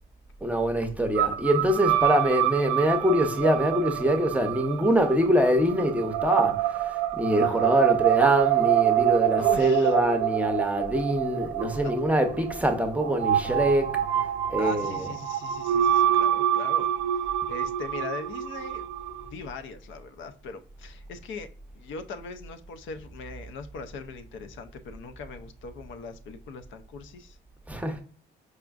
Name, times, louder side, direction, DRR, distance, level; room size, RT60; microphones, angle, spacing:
voice 1, 0.4-15.2 27.7-28.0, equal, 5° right, 0.6 m, -24 dB
sound 1, 1.2-19.3, right 11 dB, 80° right, 0.4 m, -26 dB
voice 2, 9.4-9.9 11.8-11.9 14.6-18.8 19.2-21.5 21.8-27.4, left 5 dB, 75° left, 0.5 m, -40 dB
4.8 x 2.4 x 2.3 m
cardioid pair, 90°, 20 cm